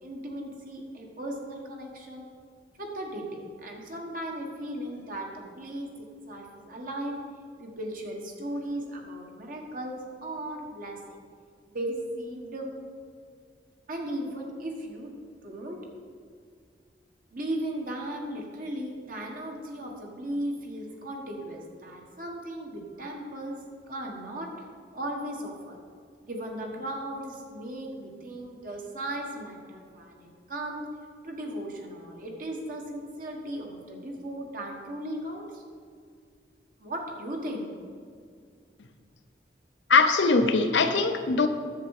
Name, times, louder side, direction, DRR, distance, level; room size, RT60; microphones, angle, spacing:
voice 1, 0.0-2.2 2.8-5.9 6.3-7.1 7.6-11.0 11.7-12.7 13.9-15.1 15.4-15.8 17.3-23.6 23.9-24.5 24.9-25.8 26.2-30.8 31.2-35.6 36.8-37.7, right 1 dB, 50° right, 1 dB, 1.5 m, -36 dB
voice 2, 39.9-41.5, left 4 dB, 85° left, 7 dB, 0.7 m, -21 dB
10.5 x 7.4 x 4.8 m, 2.1 s
head